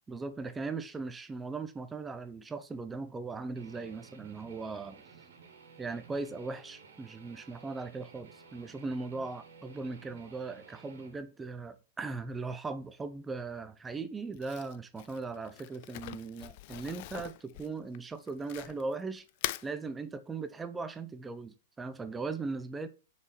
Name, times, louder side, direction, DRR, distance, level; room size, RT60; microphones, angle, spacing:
voice 1, 0.1-5.0 5.8-19.2 19.6-22.9, right 3 dB, 15° right, 0.6 m, -39 dB
Guitar, 3.6-11.2, right 5 dB, 70° right, 1.9 m, -55 dB
Crumpling crinkling, 14.3-18.9 19.3-19.7, left 17 dB, 50° left, 0.4 m, -41 dB
5.5 x 4.8 x 4.2 m
hypercardioid pair, 115°, 0 cm